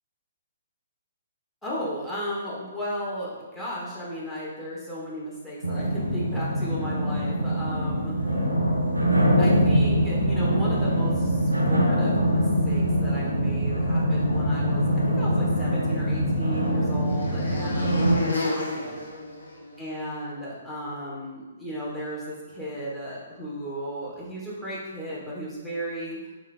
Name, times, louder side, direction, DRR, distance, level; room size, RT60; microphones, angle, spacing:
voice 1, 1.6-8.1 9.4-18.9 19.8-26.2, equal, 5° left, -8 dB, 1.3 m, -35 dB
sound 1, 5.6-18.2, equal, 85° right, 0.7 m, -23 dB
sound 2, 16.0-20.1, left 2 dB, 75° left, 0.8 m, -33 dB
3.7 x 3.7 x 3.4 m, 1.2 s
figure-of-eight pair, 125°, 0 cm